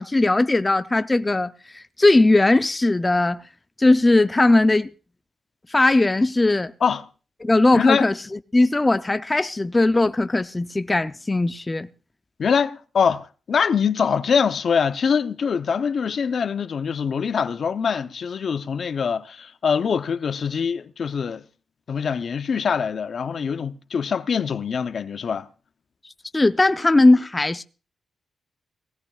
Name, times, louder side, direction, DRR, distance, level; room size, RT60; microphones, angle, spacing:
voice 1, 0.0-3.4 3.8-4.9 5.7-6.7 7.4-8.1 8.5-11.9 26.3-27.6, left 2 dB, 20° left, 0.5 m, -19 dB
voice 2, 7.7-8.1 12.4-21.4 21.9-25.5, left 6 dB, 60° left, 0.7 m, -23 dB
19.0 x 17.5 x 2.4 m
cardioid pair, 75°, 0 cm